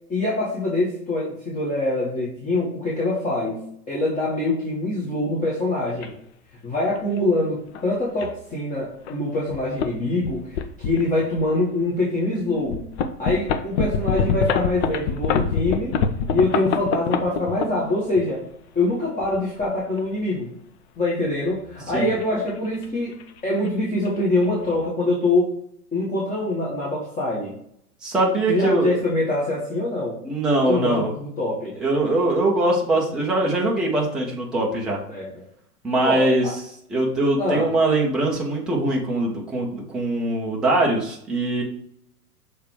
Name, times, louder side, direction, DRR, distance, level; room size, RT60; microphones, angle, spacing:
voice 1, 0.1-6.1 6.6-12.9 13.2-16.0 16.3-18.4 18.7-20.5 21.0-23.2 23.4-25.5 25.9-27.6 28.5-30.2 30.5-31.7 35.1-35.4 36.0-36.5 37.4-37.7, left 2 dB, 15° left, -5 dB, 1.6 m, -24 dB
sound 1, 6.0-6.1 7.0-7.2 7.7-7.8 8.2-8.3 9.1-9.2 9.5-9.9 10.2-11.5 12.0-12.1 12.7-18.2 19.1-20.0 21.7-22.9 23.1-23.4 23.7-23.8 24.1-24.5, left 6 dB, 45° left, 0.7 m, -25 dB
voice 2, 28.0-28.9 30.2-31.1 31.8-35.0 35.8-41.6, right 2 dB, ahead, -3 dB, 0.3 m, -22 dB
6.5 x 3.4 x 4.6 m, 0.71 s
figure-of-eight pair, 100°, 45 cm